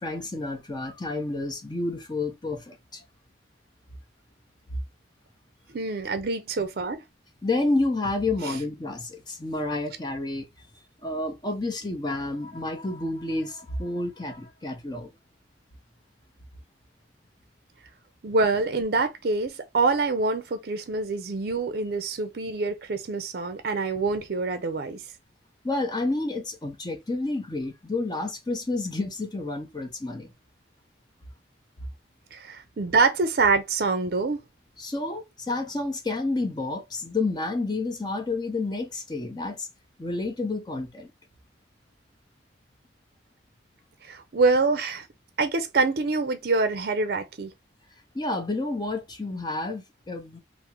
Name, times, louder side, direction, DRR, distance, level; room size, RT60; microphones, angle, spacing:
voice 1, 0.0-3.0 7.4-10.5 11.0-15.1 25.6-30.3 34.8-39.7 40.0-41.1 48.1-50.4, left 2 dB, 25° left, 0.6 m, -30 dB
voice 2, 5.7-7.0 8.4-8.6 18.2-25.0 32.3-34.4 44.0-45.1 45.4-47.5, right 3 dB, 55° right, 0.5 m, -25 dB
3.5 x 2.0 x 2.9 m
head